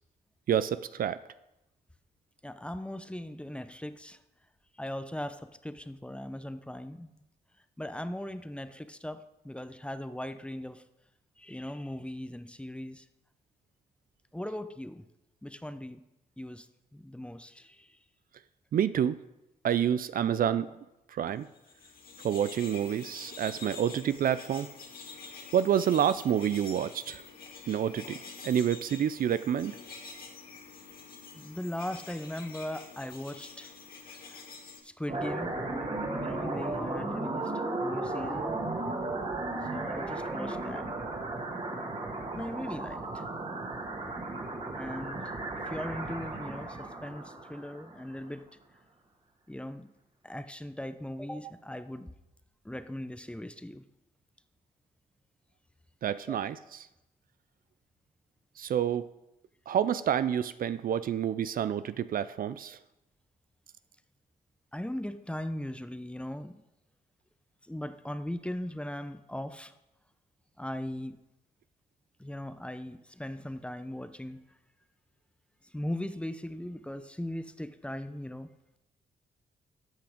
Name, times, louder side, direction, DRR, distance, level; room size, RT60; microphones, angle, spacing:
voice 1, 0.5-1.2 18.7-19.2 19.6-20.7 21.1-21.5 22.2-24.7 25.5-27.2 27.7-29.7 56.0-56.6 58.6-59.1 59.7-62.8, right 9 dB, 60° right, 14 dB, 0.5 m, -28 dB
voice 2, 2.4-4.2 4.7-7.1 7.8-10.8 11.4-13.1 14.3-15.0 15.4-16.0 16.4-18.0 31.3-33.7 34.1-34.4 34.8-35.6 36.1-37.5 37.8-38.6 39.7-40.9 42.3-43.3 44.7-48.4 49.5-49.9 50.2-52.1 52.6-53.8 56.3-56.4 64.7-66.6 67.6-69.8 70.6-71.2 72.2-74.4 75.6-78.5, left 1 dB, 5° left, 11 dB, 0.8 m, -39 dB
sound 1, 21.5-34.8, left 4 dB, 65° left, 2.2 m, -47 dB
sound 2, 35.1-48.2, right 2 dB, 40° right, 2.3 m, -35 dB
13.0 x 5.9 x 5.1 m, 0.92 s
cardioid pair, 65°, 16 cm